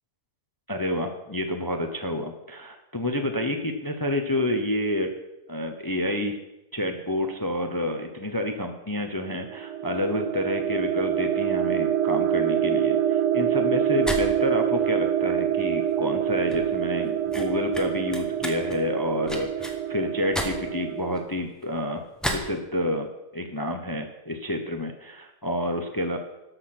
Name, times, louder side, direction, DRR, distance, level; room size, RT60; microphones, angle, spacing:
voice 1, 0.7-5.1 5.5-6.4 6.7-22.0 22.3-26.2, left 1 dB, 25° left, 5 dB, 0.5 m, -29 dB
sound 1, 9.3-21.2, right 10 dB, 80° right, 1.3 m, -26 dB
sound 2, 13.8-22.5, equal, ahead, 1.1 m, -35 dB
13.0 x 6.5 x 5.9 m, 0.93 s
omnidirectional pair, 1.8 m